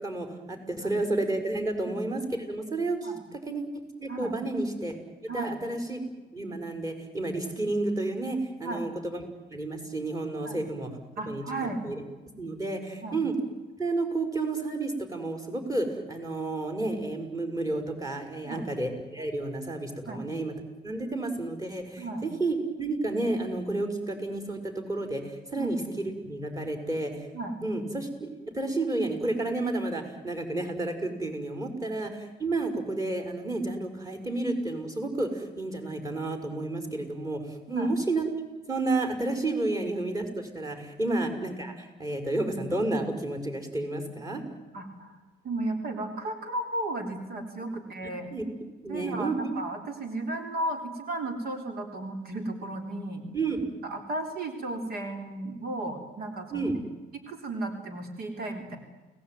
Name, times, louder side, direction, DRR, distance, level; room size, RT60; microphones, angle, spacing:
voice 1, 0.0-3.6 4.0-5.0 5.3-6.0 6.3-9.2 9.5-10.9 11.3-12.0 12.4-13.3 13.8-20.5 20.8-27.3 27.6-38.3 38.7-44.4 48.3-48.6 48.8-49.5 53.3-53.7 56.5-56.7, right 2 dB, 20° right, 6 dB, 5.9 m, -31 dB
voice 2, 11.2-11.8 13.0-13.2 18.4-18.7 20.1-20.3 22.0-22.2 25.6-25.7 27.3-27.6 31.8-32.0 37.7-37.9 41.1-41.2 44.7-45.2 45.4-48.3 48.9-53.2 53.8-56.7 57.3-58.8, right 2 dB, 65° right, 6 dB, 3.8 m, -34 dB
29.5 x 19.0 x 9.4 m, 1.2 s
cardioid pair, 110°, 17 cm